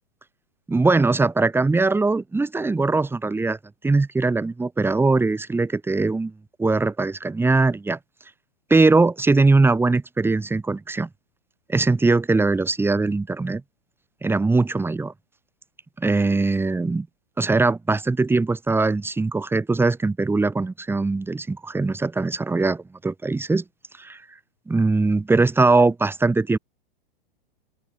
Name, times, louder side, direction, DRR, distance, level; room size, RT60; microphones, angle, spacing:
voice 1, 0.7-3.6 3.8-6.3 6.6-8.0 8.7-11.1 11.7-13.6 14.2-15.1 16.0-17.1 17.4-23.6 24.0-24.2 24.7-26.6, right 3 dB, 10° right, 2.2 m, -21 dB
open air
hypercardioid pair, 120°, 29 cm